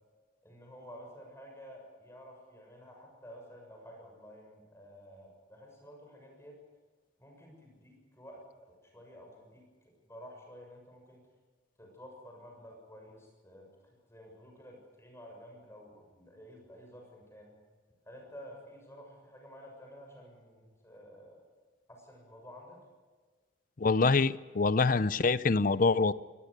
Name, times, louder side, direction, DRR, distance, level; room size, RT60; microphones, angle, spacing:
voice 1, 0.4-6.6 7.2-9.6 10.0-11.2 11.8-13.7 14.1-17.6 18.1-21.4 21.9-22.8, equal, 15° left, 1 dB, 7.0 m, -51 dB
voice 2, 23.8-26.1, left 4 dB, 45° left, 17 dB, 0.5 m, -25 dB
23.0 x 19.5 x 6.7 m, 1.4 s
head